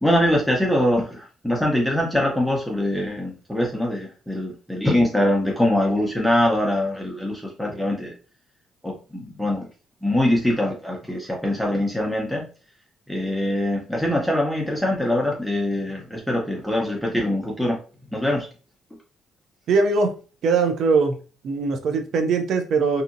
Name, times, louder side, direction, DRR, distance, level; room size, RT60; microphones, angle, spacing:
voice 1, 0.0-8.1 8.8-9.7 10.0-12.4 13.1-17.8 18.1-18.5, left 1 dB, ahead, -2 dB, 0.7 m, -23 dB
voice 2, 19.7-20.1 20.4-21.2 21.4-23.0, right 4 dB, 70° right, 6 dB, 0.5 m, -21 dB
2.7 x 2.6 x 2.5 m, 0.36 s
supercardioid pair, 65°, 0 cm